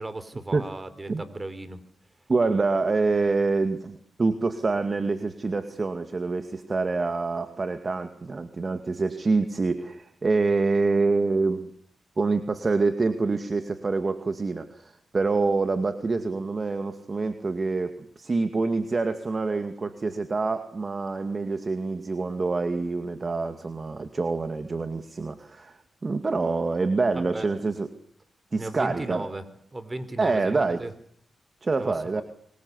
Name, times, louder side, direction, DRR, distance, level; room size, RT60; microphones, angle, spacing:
voice 1, 0.0-1.8 27.1-27.5 28.6-30.9 31.8-32.2, right 2 dB, 25° right, 13 dB, 4.4 m, -36 dB
voice 2, 2.3-11.7 12.2-27.9 28.5-29.3 30.2-30.8 31.6-32.2, right 3 dB, 40° right, 8 dB, 2.2 m, -26 dB
24.0 x 23.0 x 8.3 m, 0.62 s
cardioid pair, 55°, 0 cm